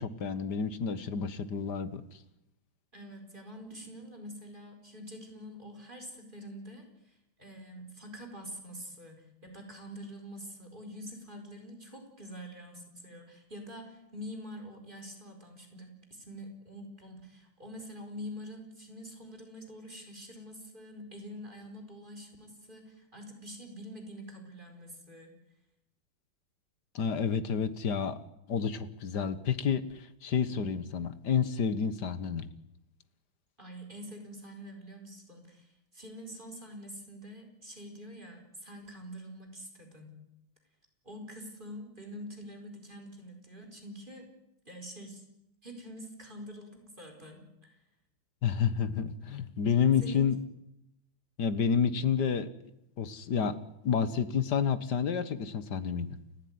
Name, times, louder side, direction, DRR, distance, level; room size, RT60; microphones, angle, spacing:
voice 1, 0.0-2.0 27.0-28.2 28.5-32.5 48.4-50.4 51.4-52.5 53.0-53.6 53.8-56.1, left 7 dB, 55° left, 13 dB, 1.8 m, -29 dB
voice 2, 2.9-6.9 7.4-25.3 33.6-35.7 35.9-40.2 41.0-44.3 44.7-45.2 45.6-47.7 50.0-50.3, equal, 20° right, 3 dB, 5.0 m, -46 dB
30.0 x 15.0 x 9.6 m, 0.85 s
omnidirectional pair, 2.3 m